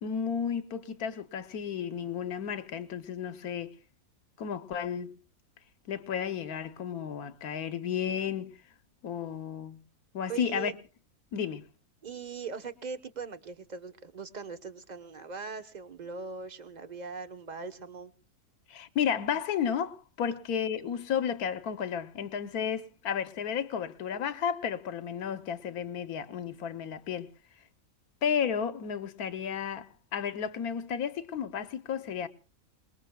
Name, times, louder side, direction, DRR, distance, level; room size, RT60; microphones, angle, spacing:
voice 1, 0.0-3.8 4.4-5.1 5.9-8.6 9.0-9.8 10.1-10.7 11.3-11.7 18.7-27.3 28.2-32.3, left 8 dB, 85° left, 1.4 m, -33 dB
voice 2, 10.3-10.7 12.0-18.1, right 5 dB, 35° right, 1.1 m, -40 dB
27.0 x 20.0 x 2.3 m
omnidirectional pair, 1.5 m